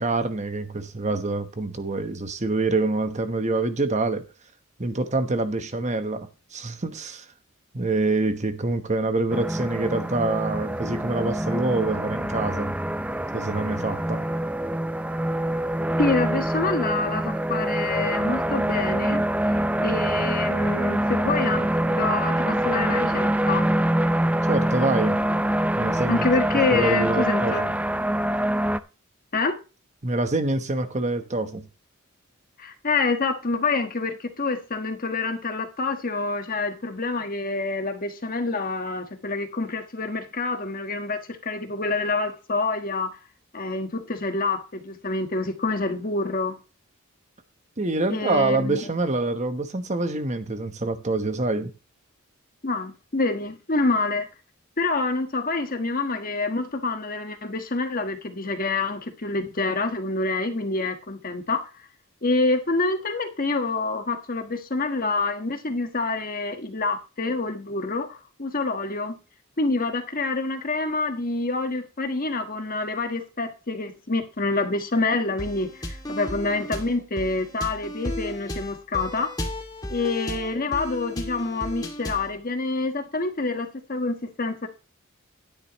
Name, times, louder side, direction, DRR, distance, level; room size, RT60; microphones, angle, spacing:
voice 1, 0.0-4.2 4.8-7.3 7.7-12.7 13.3-14.2 24.5-25.2 25.8-26.2 26.7-27.7 30.0-31.7 47.8-51.7, right 2 dB, 35° right, 1.1 m, -26 dB
sound 1, 9.3-28.8, right 1 dB, 5° right, 0.4 m, -25 dB
voice 2, 16.0-23.7 26.1-27.7 29.3-29.6 32.6-43.2 43.5-46.6 48.1-48.8 52.6-54.3 54.8-61.7 62.2-69.2 69.6-79.3 79.9-84.7, left 3 dB, 40° left, 1.4 m, -27 dB
sound 2, 75.4-82.3, left 1 dB, 20° left, 2.3 m, -34 dB
12.0 x 10.0 x 3.1 m
head